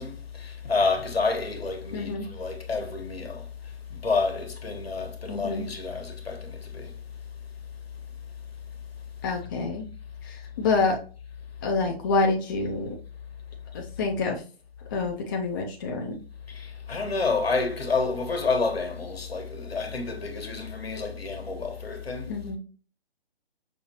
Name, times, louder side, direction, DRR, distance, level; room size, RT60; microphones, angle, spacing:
voice 1, 0.0-3.5 3.9-6.9 16.5-22.3, left 4 dB, 75° left, 1.4 m, -29 dB
voice 2, 1.9-2.3 5.3-5.6 9.2-9.8 10.2-11.0 11.6-12.9 13.7-14.4 14.9-16.2 22.3-22.6, left 3 dB, 20° left, 0.5 m, -27 dB
5.8 x 3.0 x 2.8 m
figure-of-eight pair, 135°, 31 cm